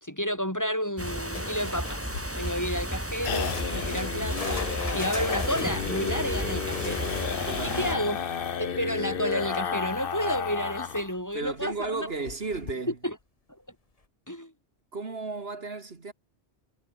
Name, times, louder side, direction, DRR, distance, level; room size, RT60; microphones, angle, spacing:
voice 1, 0.0-2.0 2.4-4.7 4.9-8.2 8.6-12.1 13.0-13.2 14.3-14.5, equal, 15° left, 2.7 m, -31 dB
sound 1, 1.0-8.0, right 1 dB, 10° right, 3.7 m, -33 dB
sound 2, 1.3-2.7 3.3-7.6 10.9-11.0 11.3-11.4 12.1-12.2, left 3 dB, 30° left, 1.5 m, -40 dB
sound 3, 2.0-11.1 11.4-11.5 11.8-11.9 12.3-12.7, left 7 dB, 55° left, 1.1 m, -32 dB
voice 2, 7.5-8.0 11.3-13.0 14.9-16.1, right 3 dB, 60° right, 2.2 m, -34 dB
omnidirectional pair, 1.2 m